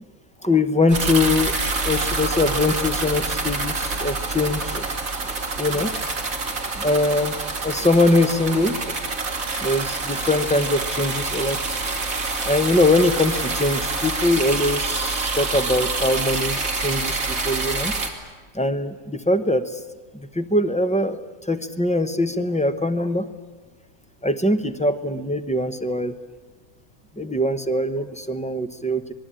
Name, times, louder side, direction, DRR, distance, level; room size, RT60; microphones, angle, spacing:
voice 1, 0.4-1.6 1.8-4.9 5.2-5.9 6.8-9.0 9.6-11.8 12.4-18.0 18.5-19.8 20.1-23.3 24.2-26.2 27.2-29.1, left 2 dB, 5° left, 7 dB, 0.7 m, -22 dB
sound 1, 0.9-18.1, right 3 dB, 65° right, 2.8 m, -26 dB
26.0 x 20.0 x 9.0 m, 1.3 s
omnidirectional pair, 1.6 m